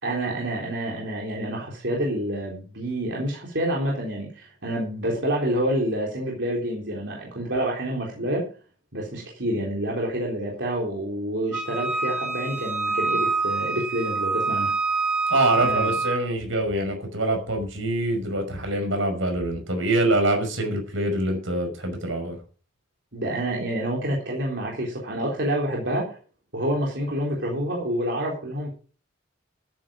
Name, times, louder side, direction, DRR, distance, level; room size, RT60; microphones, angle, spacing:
voice 1, 0.0-8.5 8.9-14.7 15.6-15.9 23.1-26.2 26.5-28.7, right 1 dB, 60° right, -2 dB, 3.8 m, -28 dB
Wind instrument woodwind instrument, 11.5-16.2, right 4 dB, 5° right, 2.3 m, -26 dB
voice 2, 15.3-22.4, right 1 dB, 80° right, 5 dB, 5.7 m, -25 dB
14.0 x 8.9 x 5.1 m, 0.39 s
head